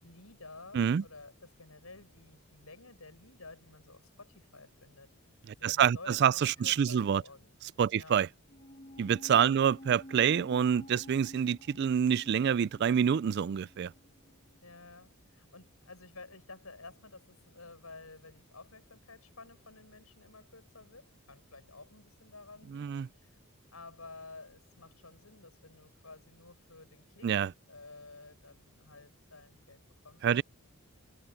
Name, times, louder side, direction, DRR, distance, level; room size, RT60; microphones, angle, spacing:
voice 1, 0.0-5.1 5.6-8.2 9.5-9.7 14.6-23.4 23.7-27.3 27.7-30.3, left 3 dB, 80° left, 7.9 m, -52 dB
voice 2, 5.5-7.2 7.8-8.3 9.0-13.9 22.7-23.1 27.2-27.5 30.2-30.4, right 8 dB, 50° right, 0.3 m, -27 dB
sound 1, 8.5-15.0 15.3-15.4, left 1 dB, 35° left, 2.9 m, -52 dB
head